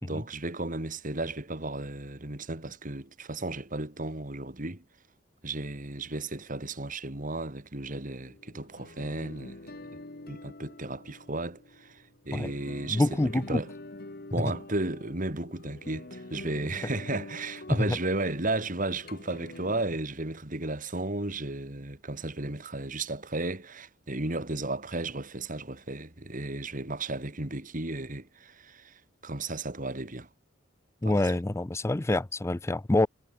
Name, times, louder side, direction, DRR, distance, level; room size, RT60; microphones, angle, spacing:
voice 1, 0.0-4.8 5.4-9.8 10.3-13.7 14.3-30.3 31.0-31.2, right 2 dB, 45° right, 2.7 m, -34 dB
sound 1, 8.2-19.8, left 2 dB, 50° left, 1.6 m, -46 dB
voice 2, 12.9-13.6 17.8-17.9 31.0-33.1, left 1 dB, 15° left, 0.4 m, -26 dB
head